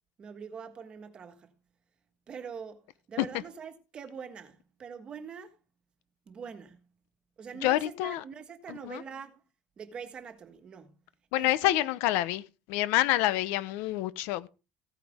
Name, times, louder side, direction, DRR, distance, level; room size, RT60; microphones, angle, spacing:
voice 1, 0.2-1.5 2.3-2.8 3.1-5.5 6.3-6.8 7.4-9.4 9.8-10.9 11.3-11.9, right 6 dB, 25° right, 1.5 m, -43 dB
voice 2, 7.6-8.2 8.7-9.0 11.3-12.4 12.7-14.5, left 15 dB, 70° left, 0.8 m, -27 dB
15.5 x 9.3 x 3.6 m
cardioid pair, 170°, 4 cm